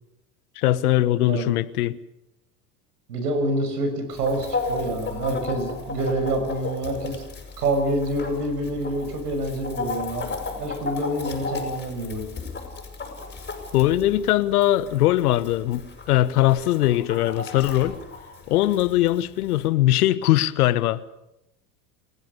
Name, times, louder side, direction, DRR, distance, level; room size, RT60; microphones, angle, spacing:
voice 1, 0.6-2.0 13.7-18.0 18.5-21.0, left 14 dB, 75° left, 1.3 m, -21 dB
voice 2, 1.2-1.5 3.1-7.2 7.6-10.3 10.6-12.3, right 1 dB, 80° right, 6.4 m, -27 dB
Chicken rooster, 4.1-19.7, left 4 dB, 20° left, 7.4 m, -35 dB
29.5 x 16.5 x 6.8 m
hypercardioid pair, 80°, 46 cm